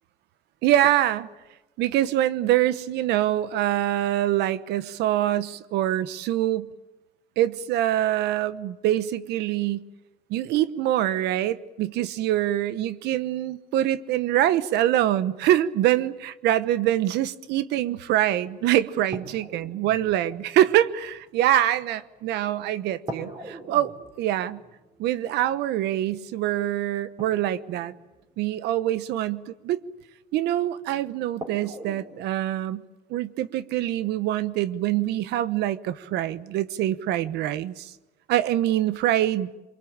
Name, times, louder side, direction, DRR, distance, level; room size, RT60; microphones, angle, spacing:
voice 1, 0.6-1.3 1.8-6.7 7.4-9.8 10.3-24.6 25.0-27.9 28.4-29.8 30.3-32.8 33.1-37.9 38.3-39.5, right 13 dB, 85° right, 15 dB, 1.0 m, -24 dB
sound 1, 19.1-22.5 23.1-29.2 30.6-30.7 31.4-32.3, right 2 dB, 30° right, 4.2 m, -43 dB
24.5 x 22.5 x 8.8 m, 1.1 s
cardioid pair, 110°, 17 cm